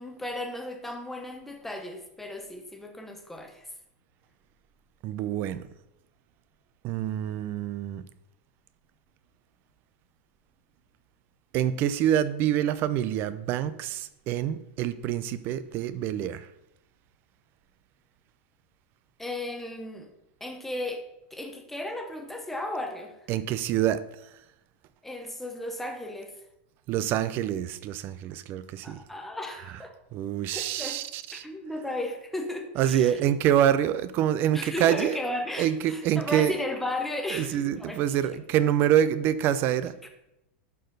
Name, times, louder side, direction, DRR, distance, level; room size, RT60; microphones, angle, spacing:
voice 1, 0.0-3.6 19.2-20.1 20.4-21.1 21.3-23.1 25.0-26.3 28.8-29.9 30.5-31.0 31.3-33.1 34.5-38.0 40.0-40.1, left 1 dB, 5° left, 4 dB, 0.8 m, -35 dB
voice 2, 5.0-5.6 6.8-8.1 11.5-16.5 23.3-24.0 26.9-29.0 29.6-31.4 32.7-35.2 35.5-36.6 37.3-40.0, right 11 dB, 35° right, 15 dB, 0.4 m, -26 dB
11.5 x 4.5 x 3.9 m, 0.85 s
supercardioid pair, 155°, 6 cm